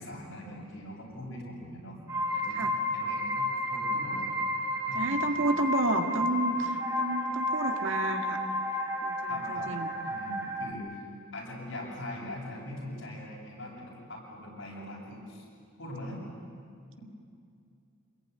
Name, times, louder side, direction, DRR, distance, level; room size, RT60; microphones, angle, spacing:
voice 1, 0.0-2.0 2.3-4.3 4.9-5.3 9.3-9.7 10.0-11.1 11.3-15.4 15.8-16.2, left 1 dB, 65° left, -2 dB, 7.8 m, -42 dB
sound 1, 2.1-10.7, left 1 dB, 15° right, 2.3 m, -31 dB
voice 2, 4.9-8.4 9.0-9.9, right 2 dB, 65° right, 5 dB, 2.0 m, -31 dB
27.0 x 21.0 x 9.7 m, 2.4 s
head